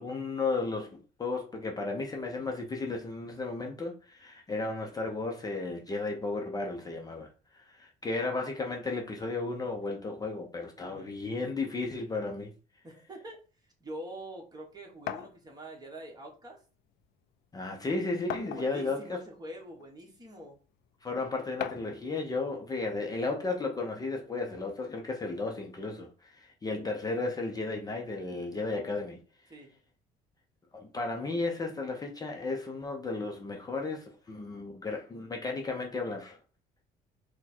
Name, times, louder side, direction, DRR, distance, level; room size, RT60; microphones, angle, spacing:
voice 1, 0.0-12.5 17.5-19.2 21.0-29.2 30.7-36.4, left 3 dB, 20° left, 0.6 m, -34 dB
voice 2, 10.8-11.2 12.8-13.4 13.8-16.6 18.5-20.6 29.5-29.7, right 1 dB, 25° right, 1.4 m, -45 dB
sound 1, 15.1-15.3 16.5-16.6 17.0-17.1 18.3-18.9 19.8-19.9 21.6-22.0, left 11 dB, 75° left, 0.4 m, -37 dB
4.3 x 2.2 x 4.3 m
cardioid pair, 110°, 17 cm